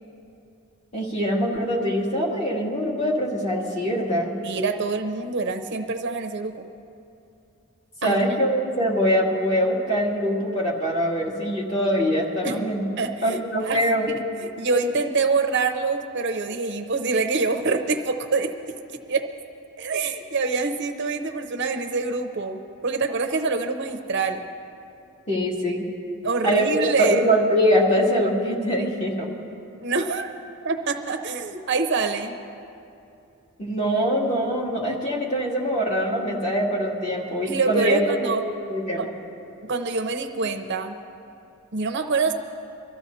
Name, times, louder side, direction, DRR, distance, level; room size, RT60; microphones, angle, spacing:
voice 1, 0.9-4.3 8.0-12.8 13.2-14.1 25.3-25.9 26.4-26.7 27.0-29.3 33.6-38.0 38.7-39.1, equal, 30° left, -4 dB, 2.3 m, -23 dB
voice 2, 4.4-6.7 8.0-8.2 12.4-12.6 13.0-13.8 14.1-18.8 19.1-19.2 19.8-24.4 26.2-27.2 29.8-30.3 30.6-32.4 37.5-38.4 39.0-39.1 39.6-41.0 41.7-42.3, right 4 dB, 55° right, 6 dB, 0.7 m, -25 dB
24.0 x 14.0 x 2.7 m, 2.6 s
head